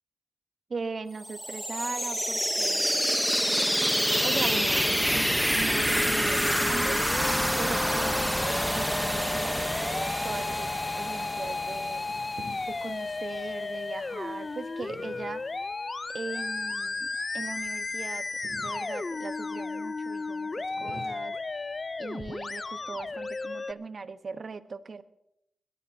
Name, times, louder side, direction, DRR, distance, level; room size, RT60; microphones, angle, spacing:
voice 1, 0.7-3.2 4.2-7.0 7.6-10.7 11.0-12.0 12.7-15.4 16.1-18.3 18.6-21.6 22.0-25.0, right 4 dB, 60° right, 10 dB, 1.0 m, -39 dB
sound 1, 1.2-12.9, equal, ahead, 0.8 m, -27 dB
Musical instrument, 5.7-23.7, left 3 dB, 45° left, 0.5 m, -34 dB
sound 2, 11.6-23.4, right 1 dB, 80° right, 6.6 m, -52 dB
21.5 x 17.5 x 2.7 m, 0.79 s
cardioid pair, 60°, 0 cm